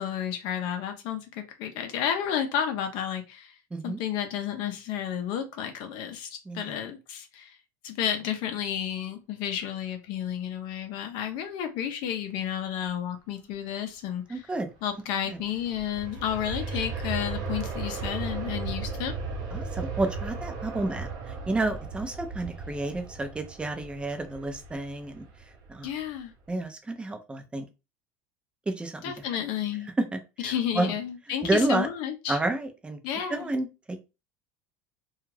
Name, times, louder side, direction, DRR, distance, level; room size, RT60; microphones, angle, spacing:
voice 1, 0.0-3.5 3.8-7.6 7.8-14.4 14.8-19.2 25.8-26.3 29.0-29.9 30.4-32.4 33.0-33.5, left 9 dB, 60° left, 0.5 m, -31 dB
voice 2, 6.5-6.8 14.3-14.7 15.3-15.4 19.5-25.2 25.7-25.9 26.5-27.6 28.7-29.1 30.1-30.9 31.4-31.9 32.3-33.0 33.3-34.0, right 2 dB, 10° right, 0.5 m, -30 dB
Aircraft, 15.2-26.0 26.5-26.6, right 4 dB, 45° right, 0.7 m, -36 dB
2.4 x 2.3 x 3.1 m
supercardioid pair, 125°, 9 cm